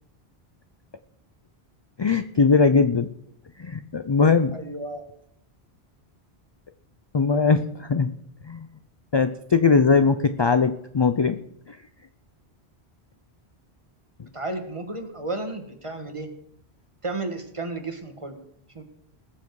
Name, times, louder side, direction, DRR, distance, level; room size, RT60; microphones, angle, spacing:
voice 1, 2.0-3.1 3.6-4.5 7.1-8.1 8.5-8.7 9.1-11.4 11.7-11.8, left 4 dB, 45° left, 11 dB, 0.3 m, -20 dB
voice 2, 4.5-5.1 14.3-16.3 17.0-18.4 18.7-18.8, right 2 dB, 30° right, 6 dB, 1.5 m, -33 dB
20.0 x 7.2 x 4.7 m, 0.72 s
omnidirectional pair, 1.1 m